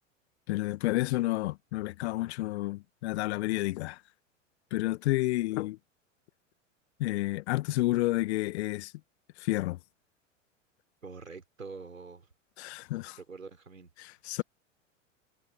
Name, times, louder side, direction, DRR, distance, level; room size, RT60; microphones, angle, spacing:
voice 1, 0.5-4.0 4.7-5.8 7.0-8.9 9.4-9.8 12.6-13.2 14.0-14.4, left 18 dB, 55° left, 1.4 m, -30 dB
voice 2, 11.0-12.3 13.2-13.9, right 4 dB, 85° right, 4.7 m, -45 dB
figure-of-eight pair, 90°, 38 cm